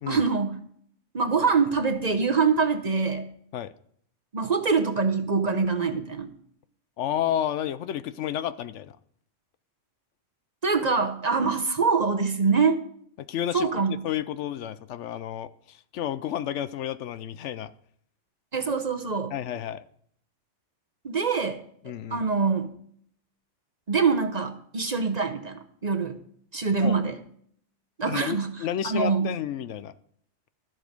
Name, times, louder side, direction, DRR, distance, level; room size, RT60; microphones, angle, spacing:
voice 1, 0.1-0.6 1.1-3.3 4.3-6.3 10.6-12.8 13.5-13.9 18.5-19.3 21.0-21.6 21.8-22.7 23.9-26.2 26.5-27.2 28.0-28.5 28.8-29.3, right 5 dB, 40° right, 6 dB, 0.9 m, -24 dB
voice 2, 7.0-9.0 13.2-13.7 14.0-17.7 19.3-19.8 21.8-22.2 26.8-27.0 28.1-29.9, left 10 dB, 75° left, 14 dB, 0.9 m, -31 dB
12.5 x 7.6 x 5.2 m, 0.64 s
omnidirectional pair, 1.3 m